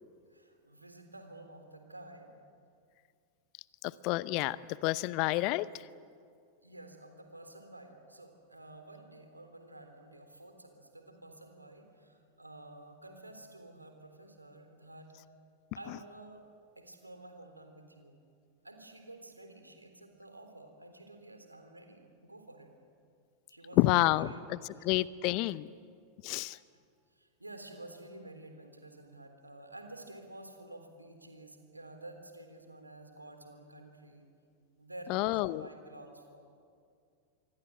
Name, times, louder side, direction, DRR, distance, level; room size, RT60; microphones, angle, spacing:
voice 1, 0.3-2.3 6.6-15.1 15.8-16.4 16.8-18.2 18.6-22.7 23.5-24.9 26.4-26.6 27.1-34.3 34.8-36.4, right 2 dB, 85° right, 6 dB, 3.6 m, -51 dB
voice 2, 3.8-5.9 15.9-16.0 23.8-25.7 26.2-26.6 35.1-35.7, left 18 dB, 45° left, 19 dB, 0.7 m, -29 dB
26.5 x 24.0 x 7.7 m, 2.2 s
figure-of-eight pair, 90°, 0 cm